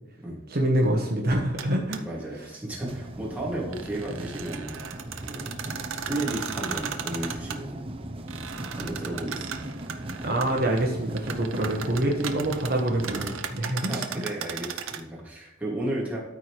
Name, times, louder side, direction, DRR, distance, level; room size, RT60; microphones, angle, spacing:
voice 1, 0.5-2.0 10.2-14.0, right 1 dB, 50° right, 0 dB, 1.1 m, -26 dB
sound 1, 1.6-1.7 1.9-2.0 3.5-7.6 8.3-10.8 11.1-15.0, right 7 dB, 80° right, 0.7 m, -36 dB
voice 2, 2.0-4.8 5.2-5.5 6.0-7.9 8.7-9.6 11.5-11.9 13.7-16.2, right 1 dB, 10° right, -5 dB, 2.4 m, -34 dB
sound 2, 2.8-13.4, right 1 dB, 30° right, 0.6 m, -38 dB
13.0 x 4.5 x 3.3 m, 1.1 s
head